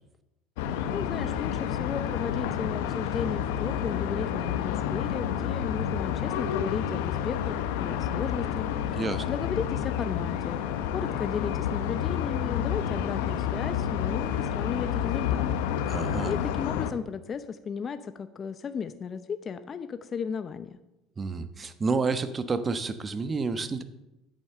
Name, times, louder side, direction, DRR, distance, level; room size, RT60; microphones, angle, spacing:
sound 1, 0.6-16.9, left 9 dB, 80° left, 0.8 m, -29 dB
voice 1, 0.9-10.6 10.9-15.4 16.2-20.8, left 6 dB, 35° left, 10 dB, 0.7 m, -35 dB
voice 2, 15.9-16.3 21.2-23.8, right 4 dB, 30° right, 11 dB, 1.1 m, -29 dB
10.5 x 8.3 x 6.7 m, 0.94 s
supercardioid pair, 85°, 0 cm